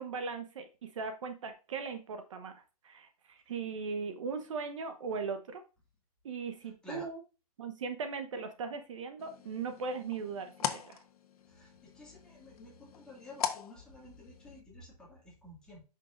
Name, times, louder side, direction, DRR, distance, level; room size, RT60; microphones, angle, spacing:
voice 1, 0.0-5.6 6.2-7.2 7.6-11.0, right 5 dB, 55° right, 1.1 m, -39 dB
sound 1, 9.2-14.6, left 8 dB, 75° left, 1.2 m, -41 dB
voice 2, 11.5-15.8, left 2 dB, 5° left, 2.0 m, -51 dB
8.9 x 5.7 x 2.5 m
hypercardioid pair, 170°, 19 cm